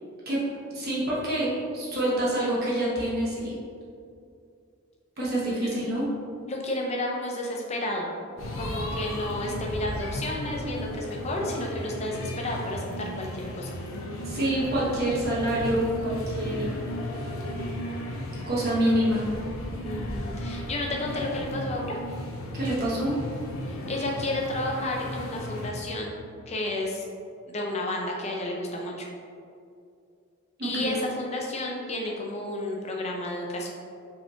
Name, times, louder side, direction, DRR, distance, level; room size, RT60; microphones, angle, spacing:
voice 1, 0.7-3.5 5.2-6.0 14.3-16.7 18.5-19.2 22.5-23.1 30.6-31.0, right 1 dB, 45° right, -7 dB, 1.2 m, -26 dB
voice 2, 6.5-8.1 8.5-13.7 19.8-22.0 23.7-26.2 26.5-27.1 27.5-29.1 30.6-33.7, left 1 dB, 30° left, -1 dB, 0.6 m, -31 dB
sound 1, 8.4-25.7, left 1 dB, 70° left, 0.7 m, -35 dB
5.3 x 3.5 x 2.8 m, 2.4 s
head